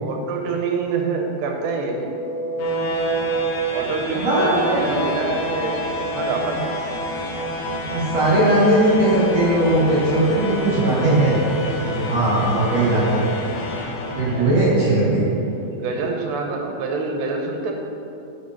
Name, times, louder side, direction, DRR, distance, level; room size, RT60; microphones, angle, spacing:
voice 1, 0.0-2.1 3.7-6.7 12.3-12.4 14.4-14.7 15.7-17.7, right 4 dB, 75° right, 2 dB, 2.6 m, -26 dB
sound 1, 1.9-14.9, equal, 80° left, 2.0 m, -28 dB
voice 2, 4.1-4.8 7.8-11.4 11.8-13.2 14.1-15.2, right 1 dB, 50° right, -7 dB, 2.0 m, -19 dB
10.5 x 5.9 x 5.7 m, 2.9 s
omnidirectional pair, 5.7 m